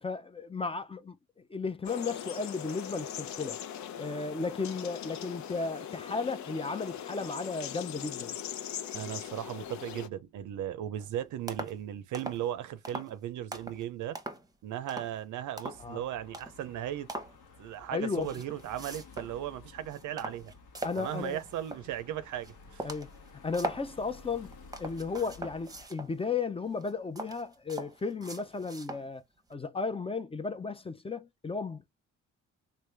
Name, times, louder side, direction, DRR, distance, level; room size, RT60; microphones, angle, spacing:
voice 1, 0.0-1.2 1.5-3.6 4.0-8.4 15.8-16.0 17.9-18.3 20.8-21.4 22.8-23.1 23.4-29.2 29.5-31.9, left 4 dB, 20° left, 0.5 m, -34 dB
sound 1, 1.8-10.1, left 9 dB, 70° left, 0.7 m, -40 dB
voice 2, 8.9-14.2 14.6-17.1 17.6-20.5 21.0-22.8, right 11 dB, 80° right, 0.6 m, -37 dB
sound 2, 11.0-11.1 11.5-11.8 12.1-12.5 12.8-13.1 13.5-13.8 14.2-14.5 14.9-15.2 15.6-15.9 16.3-16.6 17.1-17.4 18.1-19.4 19.7-21.9 22.4-22.5 22.8-23.9 24.4-26.2 26.7-29.1 29.5-29.6, right 2 dB, 10° right, 0.8 m, -41 dB
sound 3, 15.7-25.9, left 4 dB, 90° left, 1.2 m, -54 dB
3.3 x 2.5 x 3.2 m
cardioid pair, 90°, 30 cm